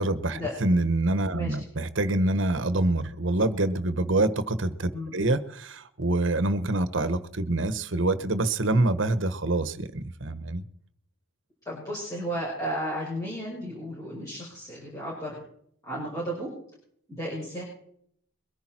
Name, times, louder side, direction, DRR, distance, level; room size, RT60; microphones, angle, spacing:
voice 1, 0.0-10.6, right 2 dB, 70° right, 12 dB, 1.2 m, -26 dB
voice 2, 11.7-15.4 15.8-16.5 17.1-17.6, equal, 15° left, -6 dB, 5.6 m, -33 dB
22.5 x 10.5 x 4.4 m, 0.67 s
head